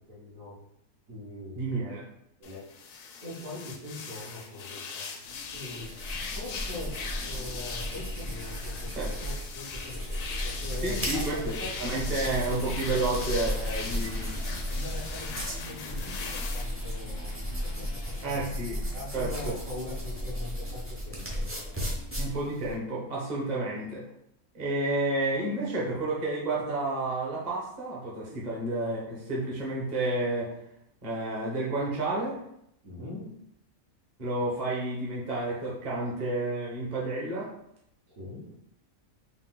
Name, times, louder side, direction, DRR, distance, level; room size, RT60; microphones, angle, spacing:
voice 1, 0.1-0.5 1.1-1.8 2.4-2.6 3.2-5.1 5.5-6.0 6.3-12.0 14.7-18.4 18.9-21.8 28.2-28.5 32.8-33.3 38.1-38.5, left 2 dB, 60° right, -6 dB, 1.7 m, -42 dB
voice 2, 1.6-2.1 9.0-9.1 10.8-14.3 18.2-18.8 19.1-19.3 22.2-24.0 24.5-30.5 31.0-32.4 34.2-37.5, right 2 dB, 30° right, -5 dB, 1.0 m, -30 dB
sound 1, 2.4-16.6, left 5 dB, 75° left, 1.1 m, -40 dB
sound 2, 5.2-22.7, equal, 15° right, 0.4 m, -35 dB
Electric guitar, 12.1-18.5, left 2 dB, 60° left, 0.6 m, -47 dB
4.0 x 2.6 x 3.7 m, 0.76 s
omnidirectional pair, 1.6 m